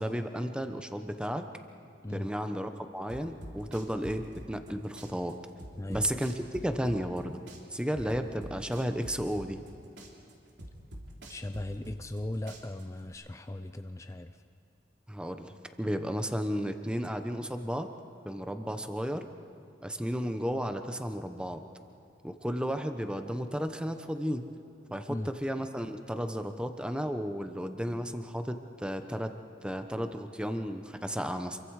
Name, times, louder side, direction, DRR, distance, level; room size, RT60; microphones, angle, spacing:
voice 1, 0.0-1.4 2.1-5.4 5.9-7.4 7.7-9.6 15.1-15.5 15.8-17.9 18.2-19.3 19.8-21.6 22.2-24.4 24.9-29.3 29.6-31.6, equal, 5° right, 7 dB, 1.0 m, -33 dB
sound 1, 3.1-4.7 5.0-7.2 7.5-9.7 10.0-12.2 12.5-13.1, right 1 dB, 85° right, 3.0 m, -45 dB
voice 2, 5.8-6.1 11.3-14.4 25.1-25.3, left 1 dB, 15° left, 8 dB, 0.5 m, -38 dB
28.0 x 23.5 x 4.9 m, 2.8 s
head